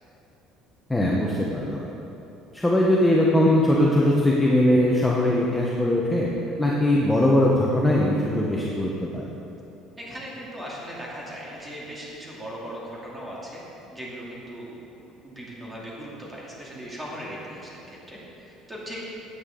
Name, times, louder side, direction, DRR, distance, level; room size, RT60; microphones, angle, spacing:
voice 1, 0.9-1.8 2.5-6.3 6.6-9.2, left 1 dB, 5° left, -4 dB, 1.0 m, -21 dB
voice 2, 10.0-13.6 13.9-19.1, equal, 10° right, -5 dB, 2.6 m, -38 dB
16.5 x 8.7 x 3.8 m, 2.9 s
cardioid pair, 160°, 0 cm